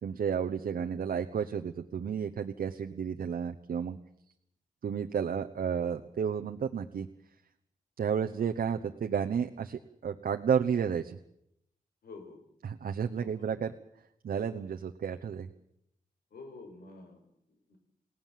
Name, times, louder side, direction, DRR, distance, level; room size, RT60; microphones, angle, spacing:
voice 1, 0.0-4.0 4.8-7.1 8.0-11.2 12.6-13.7 14.2-15.5, right 7 dB, 75° right, 5 dB, 1.1 m, -32 dB
voice 2, 12.0-12.4 13.2-13.4 16.3-17.8, left 3 dB, 85° left, 5 dB, 5.4 m, -49 dB
29.0 x 17.5 x 7.6 m, 0.78 s
wide cardioid pair, 125°, 15 cm